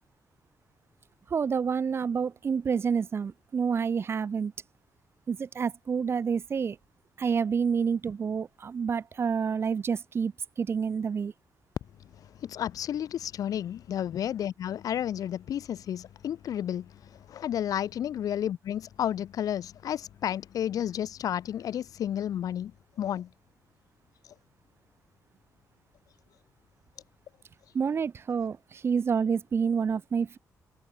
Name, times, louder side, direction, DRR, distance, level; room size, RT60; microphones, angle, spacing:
voice 1, 1.3-4.5 5.3-6.8 7.2-10.3 10.6-11.3 27.8-30.4, right 6 dB, 40° right, 1.7 m, -28 dB
voice 2, 12.1-22.7 23.0-23.3 24.2-24.3, left 10 dB, 70° left, 2.0 m, -32 dB
cardioid pair, 130°, 6 cm